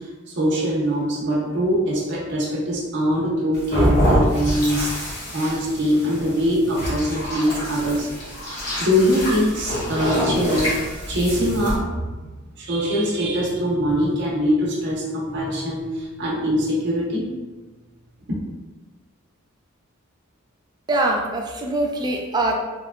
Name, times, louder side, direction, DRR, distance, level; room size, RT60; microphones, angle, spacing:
voice 1, 0.3-4.9 5.3-8.1 8.4-10.8 11.1-12.1 12.6-17.3 18.3-18.4, equal, 55° right, -5 dB, 0.7 m, -22 dB
sound 1, 3.5-11.8, equal, 55° left, 1.1 m, -25 dB
voice 2, 20.9-22.5, right 2 dB, 20° right, 1 dB, 0.3 m, -23 dB
2.8 x 2.2 x 2.3 m, 1.3 s
head